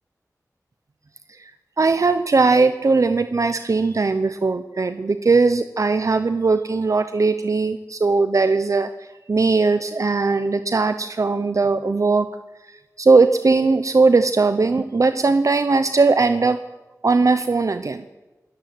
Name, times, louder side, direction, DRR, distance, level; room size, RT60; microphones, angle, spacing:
voice 1, 1.8-12.3 12.6-16.6 17.0-18.2, right 3 dB, 55° right, 10 dB, 0.9 m, -19 dB
26.5 x 14.0 x 7.9 m, 1.1 s
wide cardioid pair, 90°, 6 cm